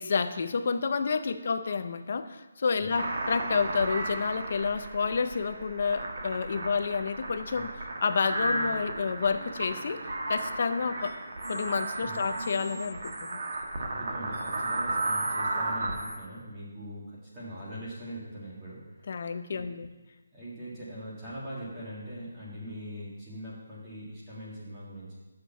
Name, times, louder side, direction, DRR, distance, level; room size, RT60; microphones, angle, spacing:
voice 1, 0.0-7.7 8.0-10.0 10.3-11.2 11.5-13.4 19.1-19.9, left 5 dB, 40° left, 10 dB, 0.5 m, -29 dB
sound 1, 3.0-16.2, right 2 dB, 45° right, 1.2 m, -34 dB
voice 2, 13.7-19.6 20.3-25.2, equal, 15° right, -8 dB, 1.8 m, -42 dB
6.5 x 6.4 x 6.8 m, 1.1 s
hypercardioid pair, 175°, 0 cm